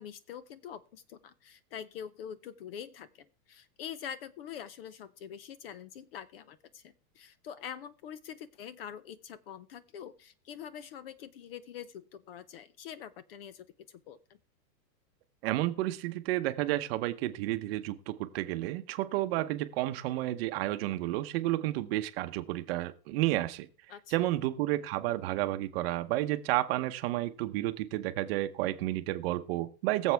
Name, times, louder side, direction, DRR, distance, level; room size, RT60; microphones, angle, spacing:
voice 1, 0.0-14.2 23.9-24.1, left 8 dB, 35° left, 0.5 m, -45 dB
voice 2, 15.4-23.7 24.1-30.1, right 16 dB, 35° right, 0.9 m, -31 dB
22.0 x 7.4 x 3.4 m
supercardioid pair, 155°, 50 cm